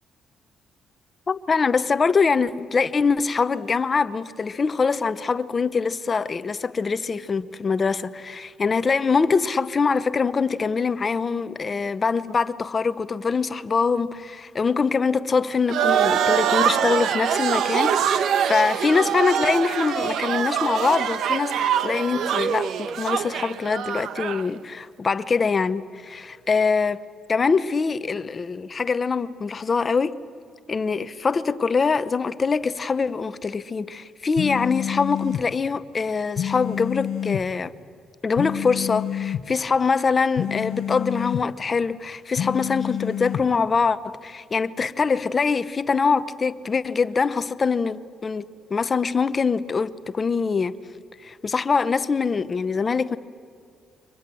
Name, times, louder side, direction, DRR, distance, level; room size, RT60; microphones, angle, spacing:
voice 1, 1.3-30.2 30.7-37.7 38.2-50.8 51.2-53.2, left 5 dB, 25° left, 0.7 m, -24 dB
sound 1, 15.7-24.5, right 8 dB, 60° right, 1.1 m, -24 dB
sound 2, 34.4-35.4 36.4-37.4 38.4-39.4 40.4-41.4 42.4-43.4, left 10 dB, 60° left, 1.0 m, -28 dB
30.0 x 24.0 x 7.7 m
cardioid pair, 175°, 0 cm